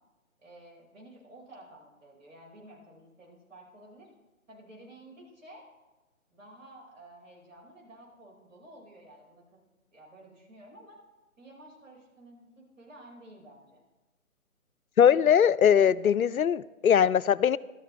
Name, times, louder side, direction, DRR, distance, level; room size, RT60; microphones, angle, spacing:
voice 1, 0.4-4.1 4.5-5.7 6.3-9.4 9.9-11.0 11.4-13.8, right 1 dB, 60° right, -2 dB, 5.3 m, -52 dB
voice 2, 15.0-17.6, left 8 dB, 80° left, 17 dB, 0.5 m, -21 dB
14.5 x 13.0 x 3.4 m, 1.1 s
figure-of-eight pair, 155°, 42 cm